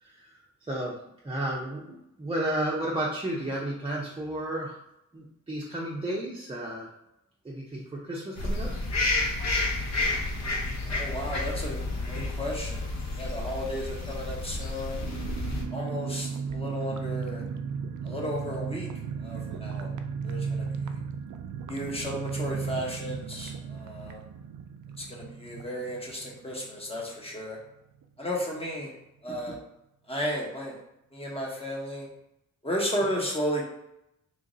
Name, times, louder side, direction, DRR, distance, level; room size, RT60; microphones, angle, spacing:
voice 1, 0.0-0.4 0.7-0.9 1.2-4.8 5.1-6.9 7.4-8.7, right 1 dB, 15° right, -5 dB, 0.6 m, -32 dB
sound 1, 8.4-15.6, left 2 dB, 55° left, 0.7 m, -30 dB
voice 2, 10.9-11.8 12.1-12.8 13.2-15.1 15.7-17.4 18.0-18.9 19.2-19.9 20.2-21.0 21.7-24.2 25.0-27.6 28.2-28.9 29.2-29.6 30.1-30.8 31.1-32.1 32.6-33.6, equal, 20° left, -3 dB, 1.1 m, -33 dB
sound 2, 15.0-27.4 27.6-27.7 28.0-28.3, right 5 dB, 65° right, 0.4 m, -35 dB
3.1 x 2.5 x 3.9 m, 0.84 s
wide cardioid pair, 100°, 32 cm